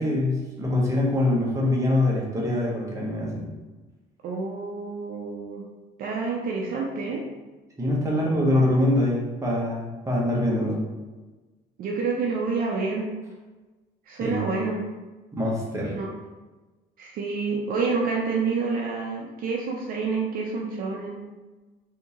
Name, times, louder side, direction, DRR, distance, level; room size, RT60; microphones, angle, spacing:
voice 1, 0.0-3.5 7.8-10.8 14.2-14.5 15.3-15.9, left 1 dB, 20° right, -4 dB, 1.0 m, -24 dB
voice 2, 4.2-5.6 6.0-7.3 11.8-13.1 14.1-14.8 15.9-16.1 17.0-21.2, right 4 dB, 55° right, -1 dB, 0.5 m, -28 dB
3.5 x 2.7 x 2.9 m, 1.2 s
cardioid pair, 110°, 17 cm